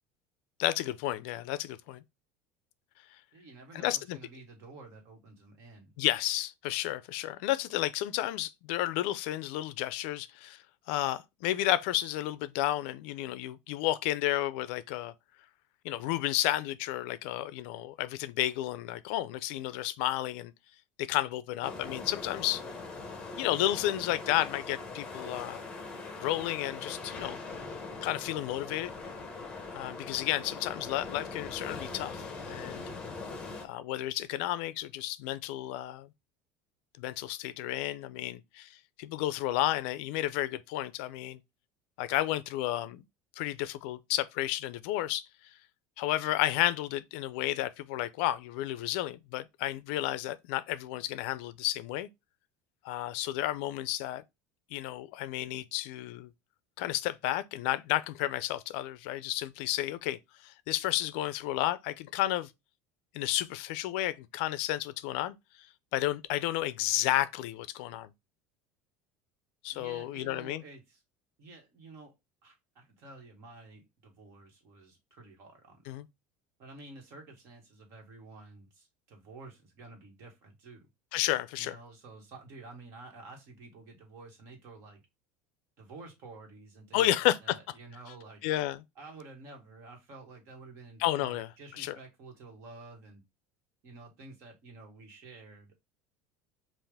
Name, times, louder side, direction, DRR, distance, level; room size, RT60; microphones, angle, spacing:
voice 1, 0.6-2.0 3.7-4.2 6.0-15.1 15.8-20.5 21.0-22.6 23.4-25.6 26.2-27.4 28.0-28.9 29.7-32.8 33.6-36.1 37.0-41.4 42.0-43.0 43.4-45.3 46.0-52.1 52.8-54.2 54.7-56.3 56.8-62.5 63.1-65.3 65.9-68.1 69.6-70.6 75.9-76.1 81.1-81.8 86.9-87.6 88.4-88.8 91.0-91.5 91.8-92.0, left 15 dB, 70° left, 0.4 m, -32 dB
voice 2, 3.3-5.9 69.7-71.0 71.4-72.1 72.4-76.0 76.6-80.9 81.6-85.0 85.8-87.1 87.4-88.4 88.9-93.2 93.8-95.8, right 3 dB, 50° right, 1.6 m, -50 dB
sound 1, 21.6-33.6, left 3 dB, 15° left, 0.9 m, -41 dB
5.6 x 2.5 x 3.4 m
cardioid pair, 160°, 6 cm